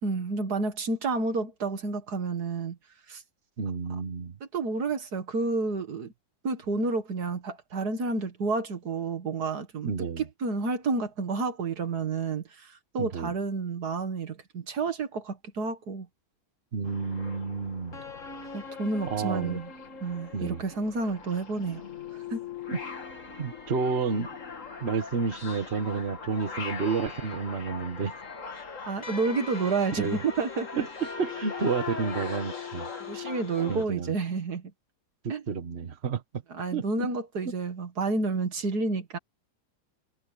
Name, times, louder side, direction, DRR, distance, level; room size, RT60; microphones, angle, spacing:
voice 1, 0.0-2.8 3.1-3.2 4.5-6.1 6.4-9.9 10.2-16.1 18.5-19.7 20.0-21.8 22.3-22.4 28.9-30.8 33.0-34.7 35.3-35.4 36.5-39.2, right 3 dB, 70° right, 2.3 m, -30 dB
voice 2, 3.6-4.4 9.8-10.2 13.0-13.3 16.7-18.0 19.1-19.6 20.3-20.6 22.7-22.8 23.4-24.3 24.8-28.1 30.0-30.2 30.8-32.9 33.7-34.1 35.2-36.2 36.7-37.1, right 5 dB, 40° right, 1.5 m, -30 dB
sound 1, 16.8-33.8, left 5 dB, 50° left, 2.5 m, -40 dB
omnidirectional pair, 1.7 m